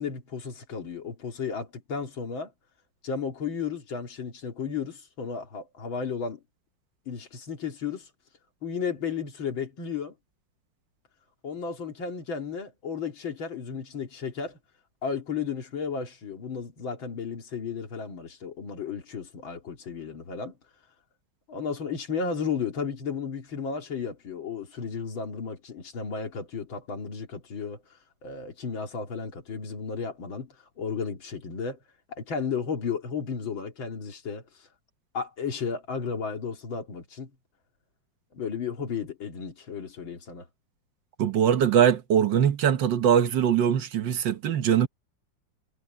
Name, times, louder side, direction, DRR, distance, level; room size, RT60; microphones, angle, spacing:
voice 1, 0.0-2.5 3.0-6.4 7.1-8.1 8.6-10.1 11.4-14.6 15.0-20.6 21.5-27.8 28.2-31.8 32.1-34.7 35.1-37.3 38.3-40.5, left 6 dB, 85° left, 3.1 m, -33 dB
voice 2, 41.2-44.9, right 9 dB, 70° right, 1.7 m, -22 dB
omnidirectional pair, 2.1 m